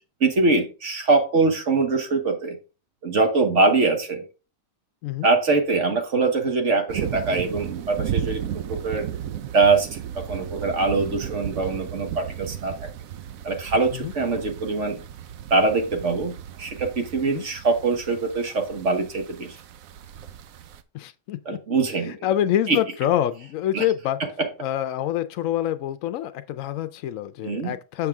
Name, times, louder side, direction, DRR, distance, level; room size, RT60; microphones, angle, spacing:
voice 1, 0.2-2.6 3.0-4.2 5.2-8.4 8.7-9.1 9.5-12.8 13.4-15.0 15.5-19.6 21.4-22.2 22.7-22.8 23.7-23.8 24.4-24.5 27.4-27.7, right 3 dB, 60° right, 1.6 m, -23 dB
sound 1, 6.9-20.8, right 10 dB, 85° right, 1.1 m, -35 dB
voice 2, 20.9-21.4 21.7-21.8 22.2-24.2 24.6-28.1, left 11 dB, 80° left, 1.0 m, -26 dB
7.1 x 5.9 x 3.5 m
omnidirectional pair, 1.4 m